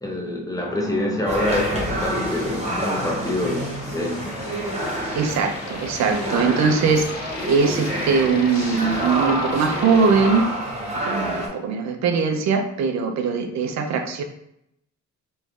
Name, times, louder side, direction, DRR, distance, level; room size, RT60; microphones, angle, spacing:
voice 1, 0.0-4.4, left 1 dB, 10° left, -1 dB, 0.7 m, -26 dB
sound 1, 0.6-9.8, left 1 dB, 75° left, 1.1 m, -40 dB
sound 2, 1.3-11.5, right 1 dB, 20° right, 1.1 m, -28 dB
sound 3, 1.4-10.4, left 4 dB, 60° left, 0.6 m, -38 dB
voice 2, 5.1-10.5 11.0-14.2, right 5 dB, 65° right, 5 dB, 0.5 m, -21 dB
3.1 x 2.4 x 3.5 m, 0.78 s
cardioid pair, 90°, 30 cm